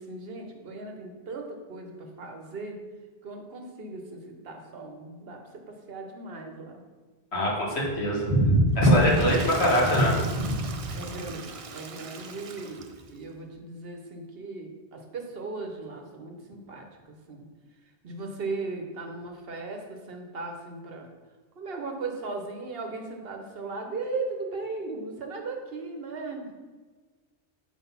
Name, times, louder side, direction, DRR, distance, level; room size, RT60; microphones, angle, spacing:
voice 1, 0.0-2.8 3.2-6.8 7.7-8.4 10.9-17.4 18.0-21.1 21.6-26.5, right 3 dB, 65° right, 3 dB, 1.1 m, -37 dB
voice 2, 7.3-10.6, equal, 85° left, -3 dB, 1.8 m, -22 dB
Water / Toilet flush, 8.7-13.2, right 5 dB, 45° right, 0.4 m, -38 dB
6.8 x 4.0 x 5.6 m, 1.4 s
omnidirectional pair, 1.1 m